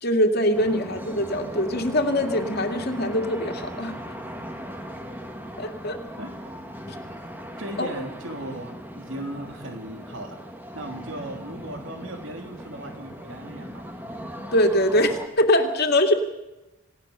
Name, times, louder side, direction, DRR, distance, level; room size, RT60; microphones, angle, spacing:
voice 1, 0.0-3.9 5.6-6.0 7.8-7.9 14.5-16.1, left 1 dB, 45° left, 4 dB, 2.5 m, -22 dB
sound 1, 0.5-15.3, equal, 10° right, 1.9 m, -38 dB
voice 2, 7.6-10.4 10.7-13.8, right 1 dB, 60° right, 4 dB, 2.9 m, -37 dB
28.0 x 17.5 x 6.9 m, 0.99 s
head